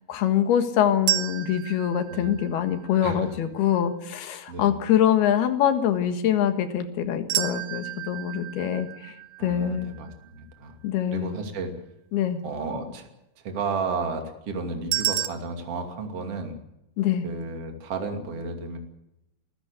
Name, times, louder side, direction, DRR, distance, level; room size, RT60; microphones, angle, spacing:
voice 1, 0.1-10.0 10.8-11.4 12.1-12.4 17.0-17.3, left 10 dB, 90° left, 9 dB, 3.6 m, -24 dB
sound 1, 1.1-3.2 7.3-10.4 14.9-15.3, right 15 dB, 75° right, 2.7 m, -31 dB
voice 2, 3.0-3.3 4.5-4.7 9.4-10.1 10.3-10.8 11.1-11.7 12.4-13.1 13.4-16.6 17.2-18.8, right 4 dB, 45° right, 5 dB, 3.3 m, -32 dB
24.5 x 14.5 x 8.2 m, 0.86 s
omnidirectional pair, 4.4 m